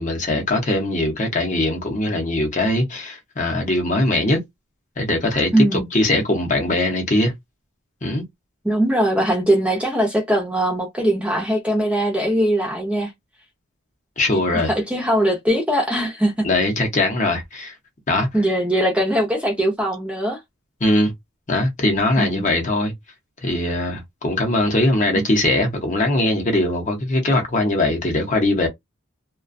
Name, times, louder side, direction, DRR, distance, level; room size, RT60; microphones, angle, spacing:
voice 1, 0.0-4.4 5.0-7.3 8.0-8.2 14.2-14.7 16.4-17.7 18.1-18.3 20.8-21.1 21.5-22.9 23.4-28.7, left 1 dB, 35° left, 0.7 m, -21 dB
voice 2, 5.5-5.9 8.6-13.1 14.6-16.5 18.3-20.4 22.2-22.5 25.1-25.2, right 1 dB, 5° right, 0.6 m, -20 dB
2.4 x 2.2 x 2.5 m
head